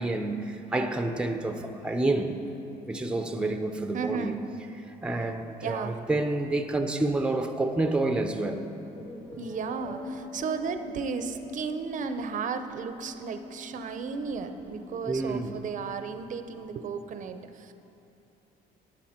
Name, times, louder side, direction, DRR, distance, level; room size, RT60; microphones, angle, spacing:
voice 1, 0.0-2.4 2.9-4.4 4.9-8.7 15.1-15.6, right 2 dB, 5° right, 6 dB, 0.6 m, -29 dB
voice 2, 3.9-4.3 5.6-6.0 9.1-17.7, right 5 dB, 50° right, 9 dB, 0.6 m, -34 dB
sound 1, 8.9-16.6, left 3 dB, 80° left, 2.2 m, -44 dB
12.0 x 8.7 x 4.3 m, 2.8 s
cardioid pair, 110°, 17 cm